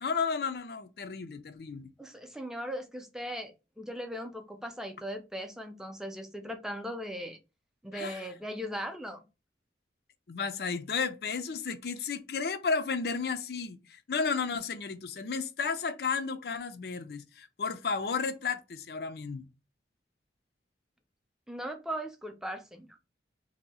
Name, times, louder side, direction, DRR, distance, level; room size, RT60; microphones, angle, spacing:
voice 1, 0.0-1.9 7.9-8.3 10.3-19.5, left 5 dB, 60° left, 0.5 m, -33 dB
voice 2, 2.0-7.4 7.8-9.2 21.5-22.9, equal, 5° right, 0.5 m, -38 dB
2.7 x 2.7 x 4.1 m
head